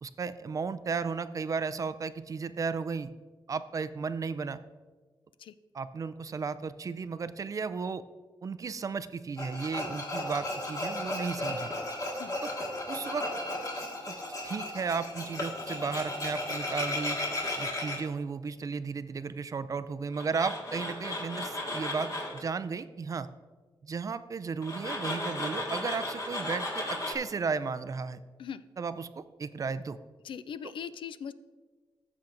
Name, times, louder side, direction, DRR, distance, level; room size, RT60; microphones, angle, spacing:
voice 1, 0.0-3.1 3.5-4.6 5.7-8.0 8.4-11.7 12.4-12.5 12.9-13.3 14.1-14.2 14.4-17.2 17.6-23.3 23.8-28.2 28.8-30.0, right 5 dB, 40° right, 13 dB, 0.4 m, -34 dB
Tools, 9.4-18.0 20.1-22.4 24.6-27.1, left 1 dB, 40° left, 1.8 m, -35 dB
voice 2, 30.2-31.3, left 8 dB, 70° left, 14 dB, 0.4 m, -40 dB
14.5 x 7.2 x 2.6 m, 1.4 s
wide cardioid pair, 125°, 9 cm